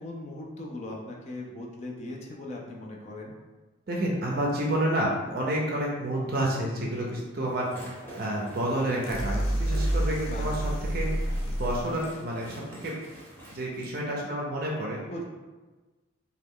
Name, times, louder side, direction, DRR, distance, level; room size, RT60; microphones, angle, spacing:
voice 1, 0.0-3.3 10.2-10.5 15.1-15.2, left 1 dB, 35° left, -1 dB, 0.4 m, -39 dB
voice 2, 3.9-11.1 11.4-13.0 13.5-15.0, right 1 dB, 45° right, -3 dB, 0.5 m, -29 dB
sound 1, 7.5-13.9, right 1 dB, 10° left, 0.8 m, -47 dB
sound 2, 9.0-12.0, right 1 dB, 85° left, 0.6 m, -28 dB
3.1 x 2.2 x 3.6 m, 1.2 s
head